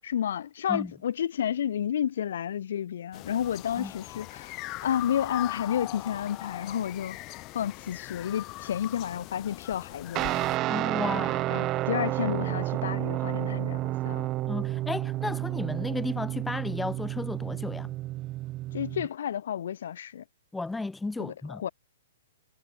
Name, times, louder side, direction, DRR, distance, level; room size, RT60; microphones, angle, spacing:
voice 1, 0.0-7.2 7.5-10.3 11.5-14.3 18.7-20.2 21.2-21.7, left 9 dB, 60° left, 7.8 m, -31 dB
sound 1, 3.1-10.6, left 21 dB, 30° left, 2.9 m, -40 dB
Guitar, 10.1-19.1, right 16 dB, 30° right, 5.2 m, -30 dB
voice 2, 10.7-11.5 14.5-17.9 20.5-21.6, left 3 dB, 5° left, 3.1 m, -34 dB
figure-of-eight pair, 115°, 0 cm